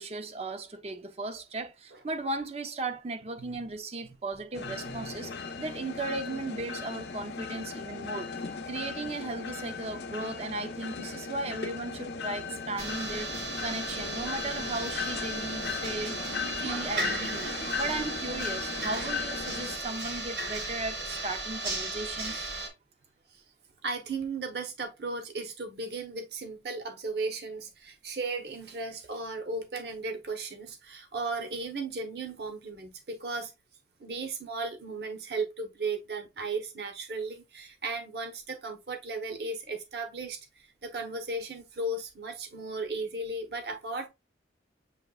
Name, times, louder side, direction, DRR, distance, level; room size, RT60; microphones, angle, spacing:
voice 1, 0.0-8.3 8.7-22.6, right 2 dB, 35° right, 0.6 m, -36 dB
sound 1, 4.5-19.8, left 5 dB, 70° left, 0.6 m, -37 dB
voice 2, 4.6-5.1 8.5-8.6 23.3-23.4 23.8-33.5 34.0-44.1, right 3 dB, 60° right, 0.9 m, -36 dB
sound 2, 12.8-22.7, right 2 dB, 85° right, 2.3 m, -35 dB
7.4 x 3.1 x 2.3 m
head